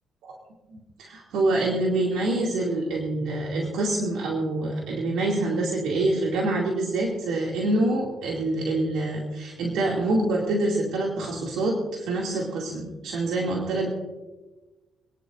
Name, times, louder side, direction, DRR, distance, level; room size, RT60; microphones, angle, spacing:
voice 1, 0.7-13.9, right 2 dB, 85° right, -3 dB, 2.5 m, -26 dB
27.5 x 10.5 x 2.6 m, 1.2 s
cardioid pair, 90°, 0 cm